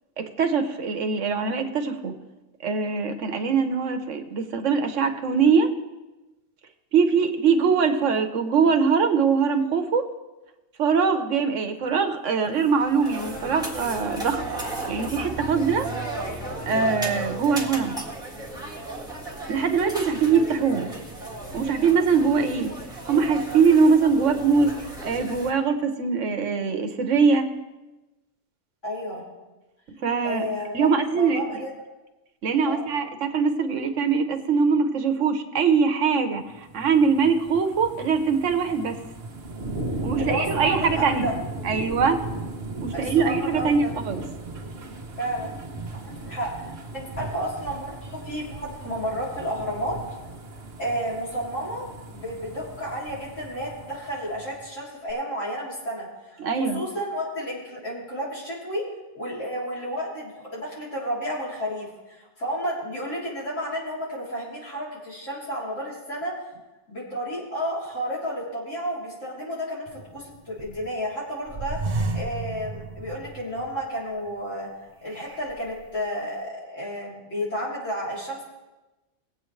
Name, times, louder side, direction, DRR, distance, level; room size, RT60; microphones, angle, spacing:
voice 1, 0.2-2.2 2.6-5.7 6.9-10.1 10.8-14.4 14.9-15.9 16.7-18.0 19.5-21.0 21.5-22.7 23.1-27.5 30.0-30.5 30.7-31.6 32.4-39.0 40.0-41.3 41.6-42.2 42.8-44.2 56.4-56.8, right 5 dB, 80° right, 7 dB, 1.3 m, -22 dB
sound 1, 12.6-25.5, right 2 dB, 5° right, 1.7 m, -35 dB
voice 2, 28.8-29.2 30.2-31.7 32.6-32.9 40.2-41.3 42.9-43.9 45.2-45.5 45.9-50.0 50.8-58.9 59.2-66.3 66.9-71.8 72.1-74.7 75.0-78.4, equal, 85° left, -6 dB, 3.9 m, -31 dB
sound 2, 36.5-54.7 55.1-55.2, right 2 dB, 60° right, 1.3 m, -36 dB
sound 3, 69.9-71.0 71.5-73.9 74.3-74.4 75.1-75.8, right 3 dB, 35° right, 0.8 m, -32 dB
20.0 x 8.3 x 3.2 m, 1.1 s
omnidirectional pair, 1.3 m